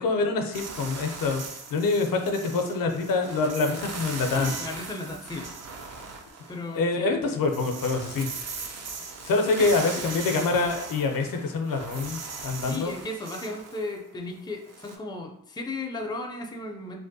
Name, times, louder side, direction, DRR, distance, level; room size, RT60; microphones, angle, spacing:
voice 1, 0.0-1.4 1.7-4.5 6.7-8.3 9.2-12.9, left 3 dB, 65° left, 5 dB, 0.5 m, -25 dB
sound 1, 0.5-6.9 7.3-15.0, right 4 dB, 45° right, 0.5 m, -39 dB
voice 2, 4.4-5.5 6.5-7.1 9.6-9.7 12.7-17.0, left 2 dB, 10° left, 3 dB, 0.4 m, -35 dB
2.5 x 2.1 x 2.6 m, 0.75 s
supercardioid pair, 45°, 36 cm